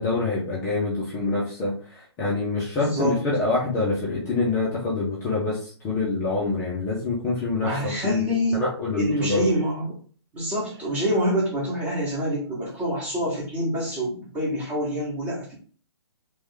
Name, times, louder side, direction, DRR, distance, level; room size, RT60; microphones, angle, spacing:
voice 1, 0.0-9.5, left 3 dB, 15° left, -6 dB, 0.9 m, -26 dB
voice 2, 2.8-3.2 7.6-8.6 9.0-9.9 10.3-15.5, equal, 10° right, -5 dB, 1.4 m, -26 dB
3.5 x 3.2 x 3.5 m, 0.44 s
figure-of-eight pair, 130°, 14 cm